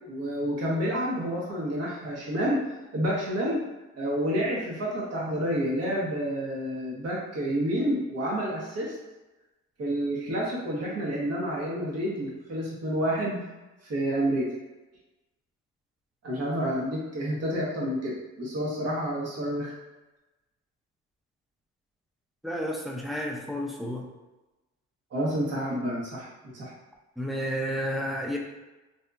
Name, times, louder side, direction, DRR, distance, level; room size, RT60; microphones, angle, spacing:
voice 1, 0.0-2.6 2.9-3.6 3.9-8.9 9.8-13.4 13.9-14.5 16.2-19.7 25.1-26.3 26.5-26.7, equal, 55° right, -5 dB, 1.0 m, -29 dB
voice 2, 22.4-24.0 27.2-28.4, equal, ahead, -1 dB, 0.4 m, -31 dB
2.7 x 2.6 x 2.3 m, 1.1 s
cardioid pair, 90°, 30 cm